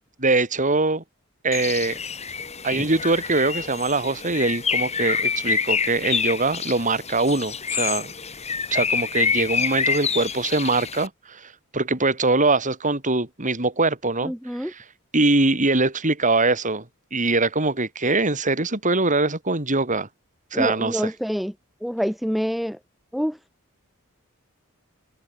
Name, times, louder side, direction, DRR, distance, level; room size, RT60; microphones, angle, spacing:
voice 1, 0.2-1.0 1.4-2.0 2.6-8.1 8.7-14.3 14.6-14.7 15.1-16.8 17.1-20.1 20.5-21.0, right 3 dB, 35° right, 3.8 m, -22 dB
Bird, 1.5-11.1, left 6 dB, 30° left, 5.8 m, -27 dB
voice 2, 14.2-14.7 20.5-21.5 21.8-22.8 23.1-23.4, equal, ahead, 2.0 m, -26 dB
open air
head